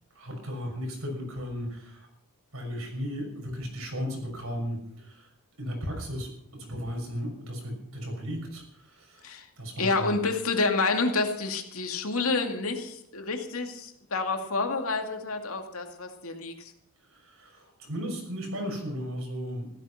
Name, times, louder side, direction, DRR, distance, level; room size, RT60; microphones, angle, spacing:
voice 1, 0.1-2.1 2.5-5.3 5.6-9.3 9.6-10.1 17.1-19.7, equal, 75° right, 1 dB, 6.3 m, -35 dB
voice 2, 9.8-16.7, left 3 dB, 80° left, 4 dB, 2.4 m, -29 dB
15.5 x 13.5 x 5.8 m, 0.73 s
head